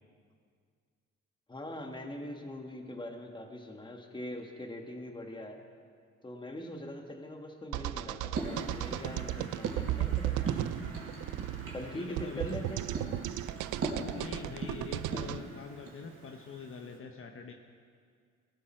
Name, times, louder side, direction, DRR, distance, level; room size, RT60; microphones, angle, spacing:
voice 1, 1.5-5.6 6.2-10.7 11.7-12.9, left 1 dB, 15° left, 3 dB, 1.7 m, -42 dB
sound 1, 7.7-15.4, right 15 dB, 85° right, 0.5 m, -35 dB
sound 2, 8.3-17.0, right 2 dB, 45° right, 4.0 m, -41 dB
voice 2, 11.9-12.6 14.1-17.5, left 4 dB, 45° left, 3 dB, 1.0 m, -44 dB
19.0 x 12.5 x 4.6 m, 2.1 s
cardioid pair, 90°, 30 cm